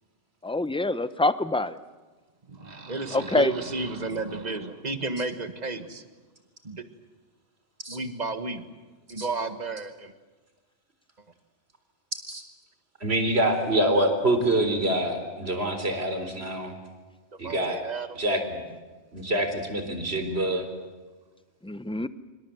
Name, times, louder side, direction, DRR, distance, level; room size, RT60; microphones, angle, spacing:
voice 1, 0.4-1.7 3.1-3.5 21.6-22.1, left 2 dB, 5° left, 13 dB, 0.7 m, -25 dB
voice 2, 2.5-6.1 6.6-6.8 7.9-8.7 9.1-10.1 17.4-18.2, right 3 dB, 35° right, 9 dB, 1.7 m, -32 dB
voice 3, 13.0-16.7 17.4-17.8 18.2-18.6 19.1-20.7, right 1 dB, 60° right, 7 dB, 4.2 m, -25 dB
27.0 x 25.0 x 7.8 m, 1.3 s
omnidirectional pair, 1.2 m